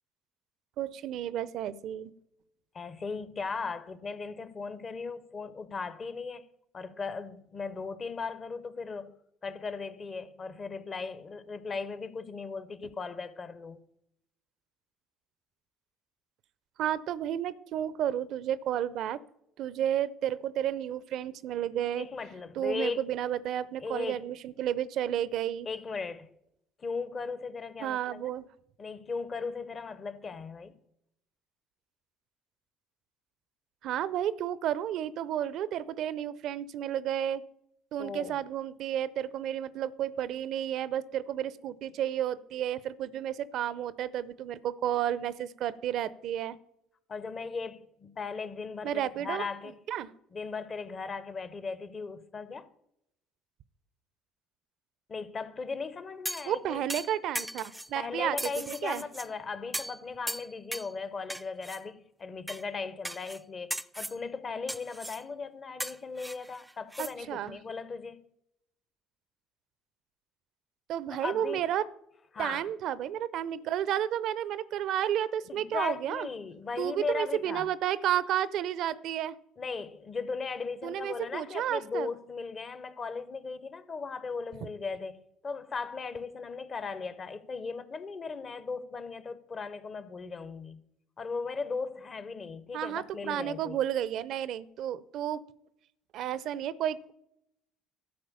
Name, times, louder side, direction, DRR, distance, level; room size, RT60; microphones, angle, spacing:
voice 1, 0.8-2.1 16.8-19.2 19.6-22.1 22.6-25.7 27.8-28.5 33.8-37.4 37.9-46.6 48.8-49.5 49.9-50.1 56.5-58.4 58.7-59.0 67.0-67.6 70.9-71.8 72.4-76.3 76.8-79.4 80.8-82.1 92.7-95.4 96.1-97.1, right 11 dB, 60° right, 0.5 m, -32 dB
voice 2, 2.7-6.5 6.7-9.1 9.4-13.8 22.0-23.0 23.8-24.3 25.6-26.3 26.8-28.3 28.8-30.8 38.0-38.4 47.1-49.8 50.3-52.7 55.1-56.8 57.9-68.2 71.1-71.7 72.3-72.6 75.5-77.7 79.6-90.8 91.2-93.8, left 4 dB, 40° left, 0.9 m, -37 dB
sound 1, 56.2-56.5 56.9-57.9 58.4-59.3 59.7-60.0 60.3-60.9 61.3-61.8 62.5-62.6 63.0-63.4 63.7-64.2 64.7-65.2 65.8-67.1 67.5-67.6, right 1 dB, 5° right, 0.4 m, -37 dB
12.0 x 4.6 x 6.8 m
hypercardioid pair, 60°, 0 cm